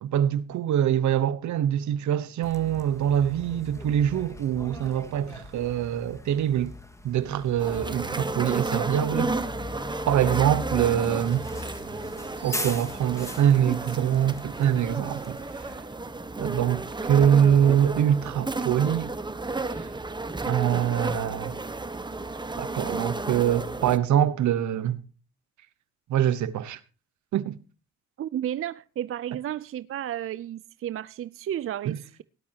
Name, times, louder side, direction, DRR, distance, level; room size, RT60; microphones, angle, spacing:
voice 1, 0.0-6.7 7.0-9.4 10.1-11.5 12.4-15.4 16.4-19.1 19.7-19.9 20.5-21.5 22.6-25.0 26.1-26.8 27.3-27.6 31.8-32.0, right 10 dB, 70° right, 1.1 m, -24 dB
Bus, 2.4-15.7, left 1 dB, 10° left, 1.9 m, -40 dB
sound 1, 7.6-24.0, right 3 dB, 15° right, 1.1 m, -33 dB
voice 2, 28.2-32.2, right 11 dB, 45° right, 0.5 m, -33 dB
18.0 x 12.0 x 2.9 m
cardioid pair, 90°, 30 cm